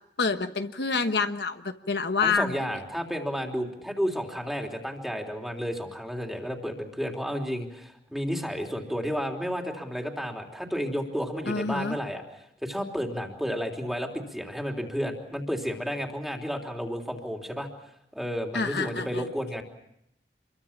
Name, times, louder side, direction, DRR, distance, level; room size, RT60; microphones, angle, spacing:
voice 1, 0.2-2.6 11.5-12.0 18.5-19.3, left 4 dB, 75° left, 8 dB, 1.3 m, -27 dB
voice 2, 2.2-17.7 18.1-19.6, equal, ahead, 2 dB, 3.2 m, -32 dB
27.5 x 23.0 x 7.3 m, 0.78 s
head